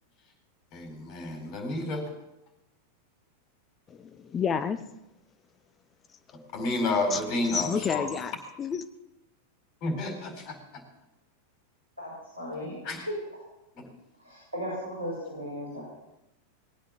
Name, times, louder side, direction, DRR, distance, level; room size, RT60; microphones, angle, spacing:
voice 1, 0.7-2.0 6.5-8.1 9.8-10.8 12.8-13.1 13.7-13.8, left 2 dB, 40° left, 5 dB, 4.7 m, -30 dB
voice 2, 3.9-4.8 7.1-7.2 7.5-8.8, left 6 dB, 25° left, 11 dB, 0.9 m, -30 dB
voice 3, 12.0-12.8 13.1-13.2 14.2-15.8, equal, 80° right, -5 dB, 6.3 m, -36 dB
19.5 x 9.1 x 7.3 m, 0.93 s
figure-of-eight pair, 90°, 0 cm